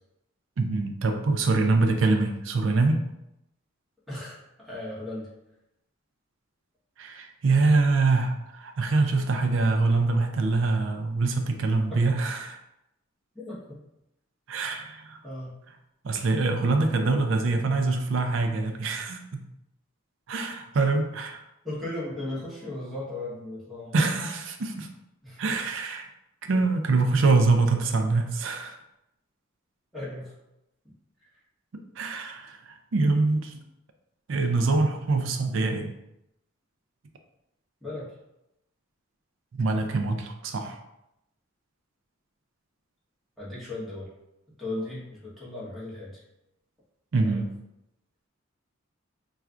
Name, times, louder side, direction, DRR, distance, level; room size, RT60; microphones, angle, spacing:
voice 1, 0.6-3.0 7.0-12.6 14.5-15.2 16.0-19.4 20.3-21.4 23.9-24.9 25.4-26.1 26.4-28.8 32.0-33.6 34.3-35.9 39.5-40.8 47.1-47.5, right 3 dB, 70° right, 5 dB, 0.4 m, -24 dB
voice 2, 4.1-5.3 11.9-12.0 13.3-13.6 15.2-15.5 21.6-23.9 25.2-25.4 29.9-30.3 37.8-38.1 43.4-44.1 44.6-46.2 47.2-47.5, left 2 dB, ahead, -9 dB, 1.2 m, -36 dB
4.3 x 2.4 x 2.4 m, 0.85 s
head